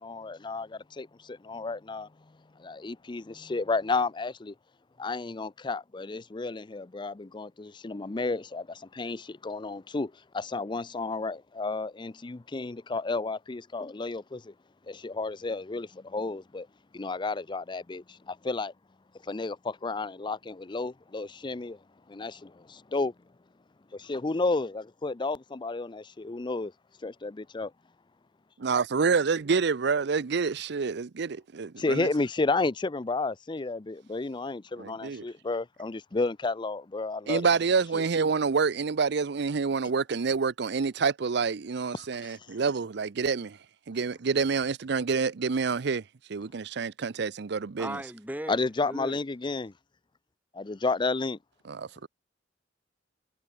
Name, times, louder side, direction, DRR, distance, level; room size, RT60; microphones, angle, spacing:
voice 1, 0.0-2.1 2.6-4.5 5.0-14.5 14.9-16.7 16.9-18.7 19.3-21.8 22.1-23.1 24.0-26.7 27.0-27.7 31.8-37.4 37.9-38.0 48.5-49.7 50.5-51.4, left 3 dB, 25° left, 0.5 m, -32 dB
voice 2, 28.6-32.1 34.8-35.3 37.3-43.6 43.9-46.0 46.3-48.0 51.6-52.1, right 5 dB, 65° right, 0.6 m, -27 dB
voice 3, 47.8-49.2, right 1 dB, 10° right, 3.1 m, -38 dB
head